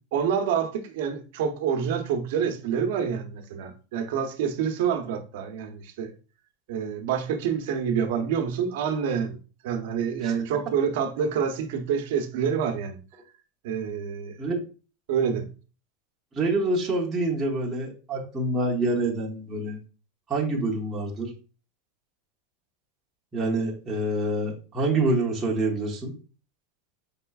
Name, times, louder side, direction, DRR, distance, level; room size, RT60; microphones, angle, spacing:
voice 1, 0.1-6.1 6.7-9.4 9.6-13.0 13.6-14.4 15.1-15.5, right 7 dB, 60° right, 0.8 m, -27 dB
voice 2, 16.3-19.8 20.3-21.3 23.3-26.1, right 2 dB, 15° right, 0.8 m, -26 dB
5.5 x 3.7 x 2.3 m
supercardioid pair, 170°, 0 cm